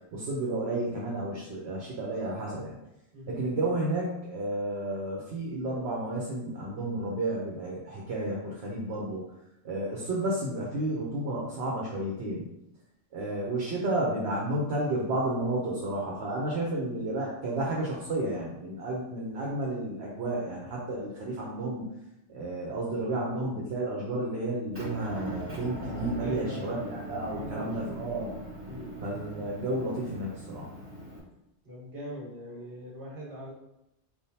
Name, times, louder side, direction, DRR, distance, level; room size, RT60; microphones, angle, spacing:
voice 1, 0.1-2.8 3.3-9.2 9.6-12.5 13.1-21.9 22.3-28.4 29.0-30.7, right 1 dB, 70° right, -4 dB, 1.1 m, -32 dB
Motor vehicle (road) / Engine, 24.7-31.2, equal, 10° right, 1.6 m, -40 dB
voice 2, 26.2-27.0 27.3-28.1 28.7-28.9 31.6-33.5, equal, 50° right, -5 dB, 1.8 m, -42 dB
4.5 x 3.6 x 2.8 m, 0.86 s
omnidirectional pair, 1.2 m